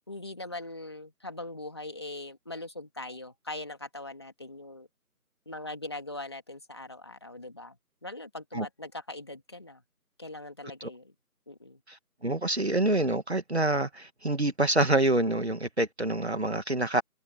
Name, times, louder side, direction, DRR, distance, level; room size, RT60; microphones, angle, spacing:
voice 1, 0.1-4.9 5.4-9.8 10.2-11.1 11.5-11.8, left 2 dB, 15° left, 3.4 m, -41 dB
voice 2, 11.9-17.0, right 2 dB, 45° right, 2.2 m, -27 dB
open air
figure-of-eight pair, 180°, 45 cm